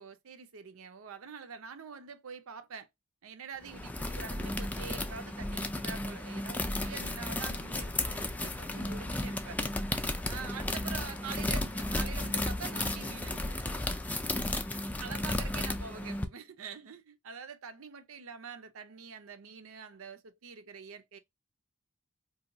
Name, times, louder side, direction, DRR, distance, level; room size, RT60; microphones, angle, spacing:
voice 1, 0.0-2.9 3.2-9.7 10.3-13.6 15.0-21.2, right 5 dB, 90° right, 0.6 m, -45 dB
sound 1, 3.6-16.3, left 1 dB, 10° left, 0.3 m, -34 dB
2.7 x 2.2 x 3.8 m
head